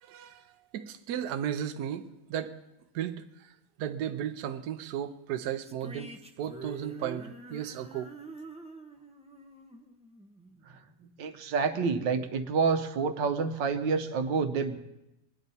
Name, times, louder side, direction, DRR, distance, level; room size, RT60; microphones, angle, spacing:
voice 1, 0.0-2.6 2.9-3.5 3.8-6.1 6.4-8.1, right 9 dB, 70° right, 1.1 m, -35 dB
sound 1, 5.6-11.0, right 2 dB, 10° right, 0.3 m, -46 dB
voice 2, 11.2-14.8, right 5 dB, 85° right, 1.6 m, -28 dB
21.0 x 10.0 x 4.1 m
omnidirectional pair, 1.9 m